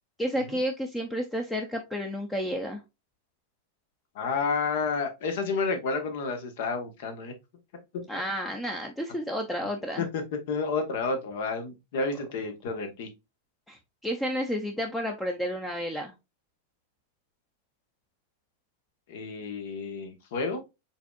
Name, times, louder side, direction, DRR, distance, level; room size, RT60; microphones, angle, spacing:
voice 1, 0.2-2.8 8.1-10.1 13.7-13.8 14.0-16.1, equal, 10° left, 3 dB, 0.6 m, -31 dB
voice 2, 4.1-7.3 8.1-8.2 10.0-10.2 10.5-13.1 19.1-20.6, left 4 dB, 65° left, 7 dB, 1.2 m, -30 dB
4.8 x 3.5 x 2.4 m, 0.24 s
hypercardioid pair, 130°, 0 cm